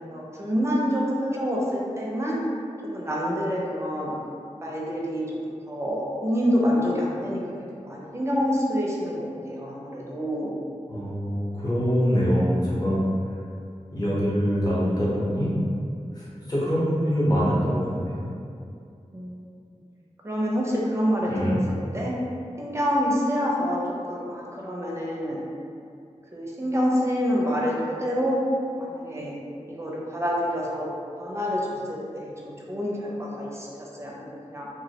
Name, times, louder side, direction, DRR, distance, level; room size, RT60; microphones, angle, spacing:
voice 1, 0.0-2.4 2.9-4.1 4.6-7.4 7.7-10.6 19.1-19.4 20.2-21.6 21.9-22.1 22.6-23.8 24.1-25.4 26.3-28.4 28.8-29.4 29.7-30.9 31.2-34.7, equal, 25° right, -4 dB, 0.4 m, -27 dB
voice 2, 10.9-13.0 13.9-15.5 16.1-18.2 21.3-21.6, equal, 30° left, -9 dB, 0.8 m, -24 dB
2.2 x 2.0 x 2.8 m, 2.4 s
wide cardioid pair, 80°, 12 cm